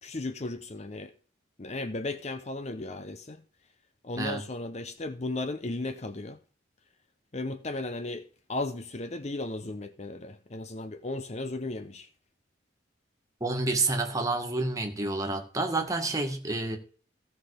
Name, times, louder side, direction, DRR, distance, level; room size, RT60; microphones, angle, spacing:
voice 1, 0.0-1.1 1.6-3.4 4.0-6.4 7.3-12.1, left 2 dB, 35° left, 0.7 m, -35 dB
voice 2, 13.4-16.8, right 2 dB, 20° right, 2.0 m, -29 dB
16.0 x 5.8 x 5.0 m
head